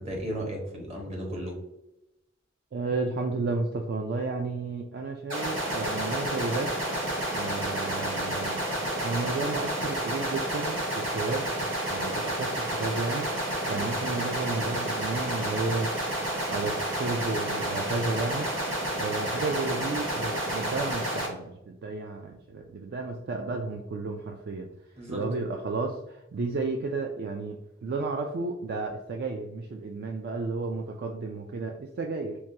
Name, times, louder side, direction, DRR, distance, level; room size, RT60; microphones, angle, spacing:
voice 1, 0.0-1.6 13.7-13.9 25.0-25.2, equal, 35° right, 0 dB, 1.0 m, -35 dB
voice 2, 2.7-6.7 7.3-11.5 11.9-13.3 13.7-15.9 16.5-18.5 19.0-24.7 25.1-32.4, right 3 dB, 55° right, 2 dB, 0.3 m, -32 dB
sound 1, 5.3-21.3, right 1 dB, 75° right, 1.3 m, -30 dB
4.5 x 2.2 x 2.7 m, 0.88 s
head